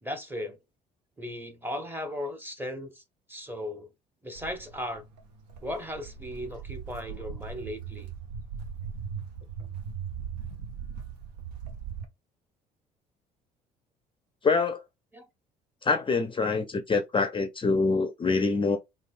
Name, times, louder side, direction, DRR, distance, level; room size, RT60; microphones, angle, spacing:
voice 1, 0.0-0.6 1.2-3.0 3.3-3.9 4.2-5.1 5.6-8.1 15.1-15.3, left 1 dB, 10° right, 0.8 m, -36 dB
Walk footsteps, 4.3-12.0, right 7 dB, 75° right, 0.7 m, -39 dB
voice 2, 14.4-14.8 15.8-18.8, left 4 dB, 25° left, 0.5 m, -25 dB
3.2 x 2.6 x 2.5 m
hypercardioid pair, 55°, 21 cm